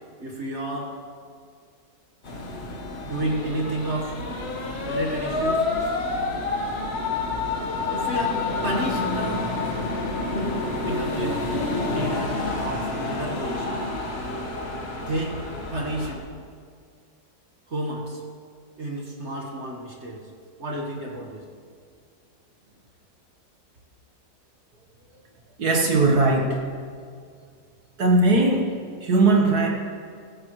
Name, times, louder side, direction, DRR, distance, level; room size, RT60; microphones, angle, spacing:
voice 1, 0.2-1.0 3.0-4.2 4.8-5.7 6.5-6.8 7.9-9.4 10.3-11.4 11.8-13.8 14.9-15.4 15.7-16.2 17.7-18.2 18.8-20.2 20.6-21.4, right 1 dB, 40° right, -1 dB, 1.7 m, -31 dB
sound 1, 2.2-16.1, left 3 dB, 35° left, 1.5 m, -28 dB
voice 2, 25.6-26.6 28.0-28.7 29.0-29.7, right 2 dB, 60° right, 1 dB, 1.8 m, -19 dB
16.5 x 15.0 x 3.2 m, 2.1 s
omnidirectional pair, 1.9 m